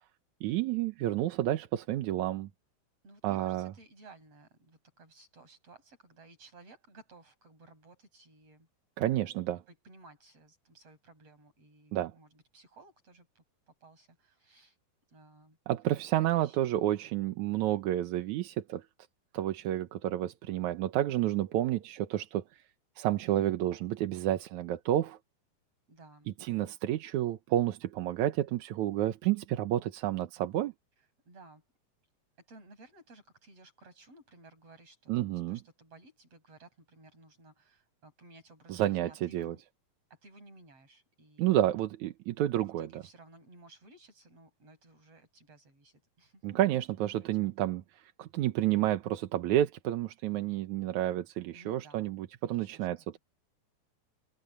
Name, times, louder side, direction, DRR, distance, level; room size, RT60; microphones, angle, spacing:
voice 1, 0.4-2.5 3.2-3.7 9.0-9.6 11.9-12.1 15.7-18.8 19.3-22.4 23.0-25.2 26.4-30.7 35.1-35.6 38.7-39.6 41.4-42.9 46.4-53.2, right 13 dB, 70° right, 2.2 m, -30 dB
voice 2, 3.0-8.7 9.7-14.8 15.1-15.6 16.1-16.8 25.9-26.3 31.0-31.6 32.4-39.6 40.1-41.5 42.6-46.7 47.0-47.5 51.5-52.1 52.4-53.2, right 2 dB, 45° right, 8.2 m, -57 dB
omnidirectional pair, 3.9 m